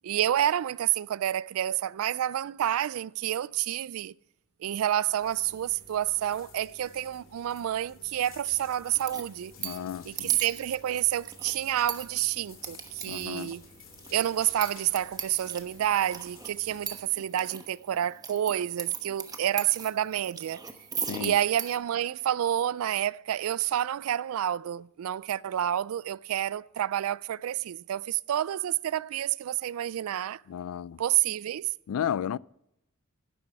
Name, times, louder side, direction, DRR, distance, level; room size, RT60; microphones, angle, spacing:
voice 1, 0.0-4.1 4.6-9.5 10.0-13.6 14.1-20.6 21.2-30.4 31.0-31.7, right 11 dB, 75° right, 0.3 m, -29 dB
sound 1, 5.2-16.9, left 4 dB, 65° left, 2.5 m, -52 dB
sound 2, 8.9-21.8, right 5 dB, 20° right, 1.0 m, -41 dB
voice 2, 9.6-10.4 13.1-13.5 21.1-21.3 30.5-31.0 31.9-32.4, left 9 dB, 85° left, 0.3 m, -33 dB
11.5 x 11.0 x 4.7 m
head